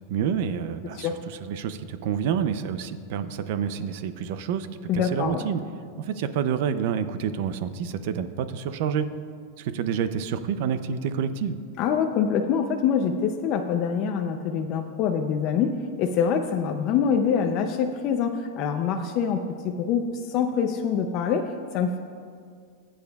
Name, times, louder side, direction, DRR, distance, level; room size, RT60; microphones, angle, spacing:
voice 1, 0.1-4.7 4.9-5.6 6.0-9.1 9.6-11.6, right 8 dB, 45° right, 11 dB, 0.5 m, -28 dB
voice 2, 4.9-5.5 11.8-22.0, left 7 dB, 30° left, 4 dB, 0.4 m, -25 dB
20.0 x 8.7 x 2.3 m, 2.1 s
supercardioid pair, 175°, 0 cm